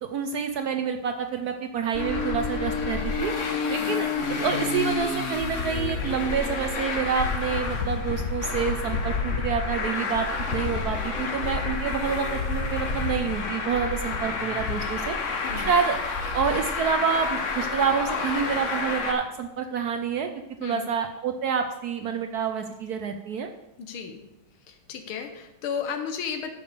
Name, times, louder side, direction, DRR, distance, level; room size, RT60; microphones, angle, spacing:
voice 1, 0.0-3.3 3.7-15.2 15.5-16.0 16.3-20.3 20.6-23.5, right 6 dB, 70° right, 6 dB, 0.9 m, -28 dB
Traffic noise roadway noise, 1.9-19.1, left 4 dB, 45° left, 1.2 m, -29 dB
voice 2, 3.7-4.1 15.4-15.7 20.6-20.9 23.8-24.2 24.7-26.5, left 6 dB, 85° left, 5 dB, 1.9 m, -34 dB
10.0 x 5.2 x 6.8 m, 0.95 s
omnidirectional pair, 2.2 m